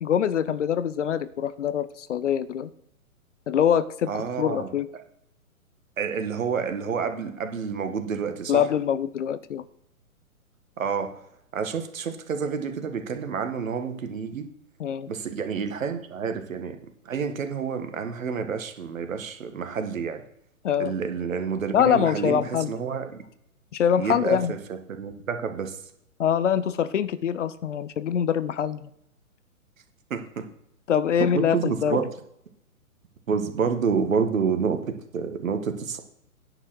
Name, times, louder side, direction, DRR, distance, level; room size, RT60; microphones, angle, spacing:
voice 1, 0.0-2.7 3.5-4.9 8.5-9.6 14.8-15.1 20.6-20.9 21.7-22.7 23.7-24.5 26.2-28.9 30.9-32.0, left 8 dB, 55° left, 16 dB, 0.8 m, -24 dB
voice 2, 4.1-5.0 6.0-8.7 10.8-11.1 11.5-14.5 15.1-16.8 17.1-20.2 20.8-23.2 24.0-24.6 24.9-25.8 30.1-30.5 31.2-32.1 33.3-34.8 35.1-36.0, right 6 dB, 65° right, 7 dB, 1.8 m, -29 dB
9.9 x 6.2 x 6.3 m, 0.74 s
figure-of-eight pair, 130°, 44 cm